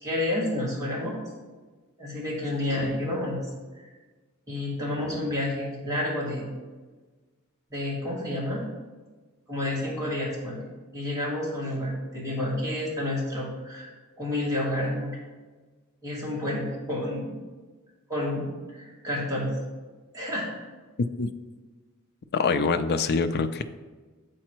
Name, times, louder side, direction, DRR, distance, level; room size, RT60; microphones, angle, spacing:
voice 1, 0.0-1.2 2.0-3.4 3.8-3.9 4.5-6.5 7.7-8.6 9.5-10.6 10.9-15.2 16.0-17.3 18.1-19.5 20.1-20.5, left 1 dB, 15° right, -6 dB, 2.0 m, -30 dB
voice 2, 22.3-23.6, left 4 dB, 45° left, 10 dB, 0.4 m, -24 dB
7.5 x 4.1 x 4.5 m, 1.3 s
head